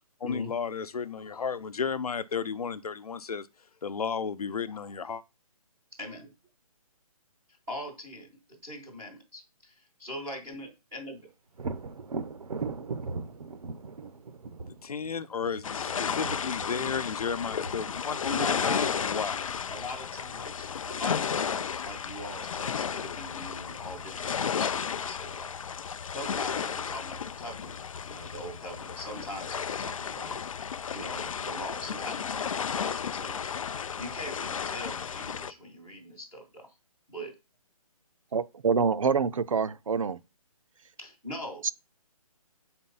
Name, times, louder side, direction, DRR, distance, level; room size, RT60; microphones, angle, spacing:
voice 1, 0.2-3.5 3.8-5.2 14.8-19.4, left 6 dB, 80° left, 0.8 m, -33 dB
voice 2, 6.0-6.3 7.7-11.3 18.3-19.4 19.7-25.6 25.8-27.7 28.1-30.4 30.9-33.5 34.0-36.7 37.1-37.3 41.0-41.7, left 1 dB, ahead, 0.3 m, -41 dB
Thunder, 11.6-19.2 22.9-23.0 23.5-24.3, right 4 dB, 75° right, 0.9 m, -40 dB
sound 1, 15.6-35.5, left 7 dB, 65° left, 0.4 m, -33 dB
voice 3, 38.3-40.2, right 5 dB, 60° right, 0.6 m, -26 dB
6.8 x 4.4 x 5.6 m
hypercardioid pair, 170°, 19 cm